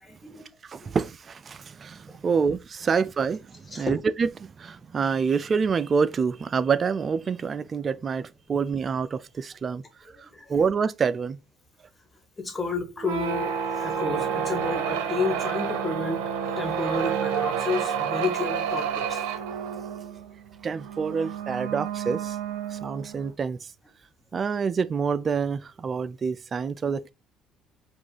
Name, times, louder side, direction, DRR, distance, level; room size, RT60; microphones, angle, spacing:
voice 1, 0.0-0.5 0.8-0.9 2.1-2.2 3.7-4.0 10.3-10.6 12.4-19.3 21.1-21.2, left 3 dB, 20° left, 1.5 m, -31 dB
voice 2, 0.6-9.8 10.5-11.4 20.6-22.4 22.7-23.7 24.3-27.1, right 5 dB, 40° right, 0.4 m, -27 dB
sound 1, 13.0-23.3, right 7 dB, 85° right, 0.6 m, -30 dB
4.8 x 2.4 x 3.7 m
supercardioid pair, 85°, 0 cm